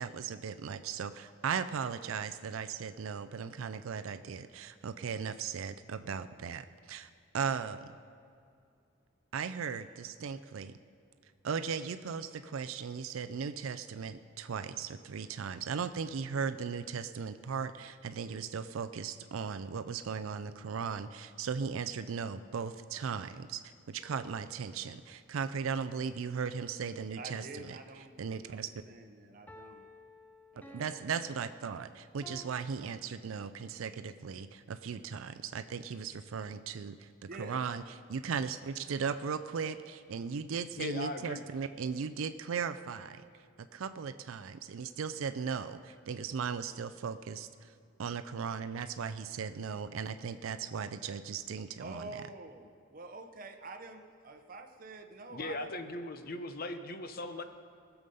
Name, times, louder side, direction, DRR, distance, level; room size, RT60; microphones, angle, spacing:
voice 1, 0.0-7.1 7.3-7.9 9.3-10.7 11.4-27.8 28.2-28.7 30.7-37.1 37.4-37.8 38.1-43.2 43.7-47.7 48.0-52.2, right 6 dB, 75° right, 10 dB, 0.4 m, -37 dB
sound 1, 24.0-25.0 29.5-32.6, left 1 dB, 10° left, 0.5 m, -55 dB
voice 2, 27.2-29.9 30.5-30.8 37.3-37.6 51.8-55.7, right 3 dB, 45° right, 5 dB, 0.7 m, -47 dB
voice 3, 40.8-41.4 55.3-57.4, left 2 dB, 45° left, 9 dB, 0.8 m, -39 dB
19.0 x 7.0 x 5.4 m, 2.4 s
head